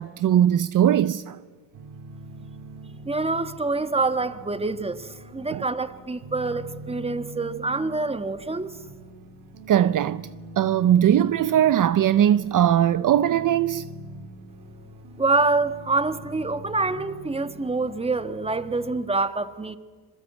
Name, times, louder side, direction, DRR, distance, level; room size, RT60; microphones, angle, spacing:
voice 1, 0.0-1.4 5.5-5.6 9.7-10.3 10.6-13.9, right 10 dB, 50° right, 0.8 m, -20 dB
sound 1, 1.7-19.0, right 1 dB, 75° right, 2.5 m, -44 dB
voice 2, 3.1-8.8 15.2-19.8, right 3 dB, 15° right, 1.6 m, -26 dB
26.0 x 22.5 x 8.2 m
cardioid pair, 85°, 40 cm